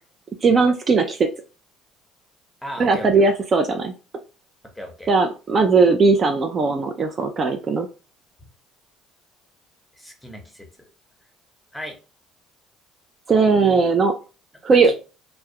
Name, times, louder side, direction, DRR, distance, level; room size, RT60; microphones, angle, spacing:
voice 1, 0.4-1.3 2.8-3.9 5.1-7.9 13.3-14.1 14.6-14.9, right 4 dB, 40° right, 5 dB, 0.3 m, -18 dB
voice 2, 2.6-3.3 4.6-5.1 9.9-10.9 11.7-12.0 13.6-13.8 14.8-14.9, left 1 dB, ahead, 3 dB, 0.8 m, -36 dB
2.3 x 2.0 x 2.8 m, 0.33 s
supercardioid pair, 90°, 0 cm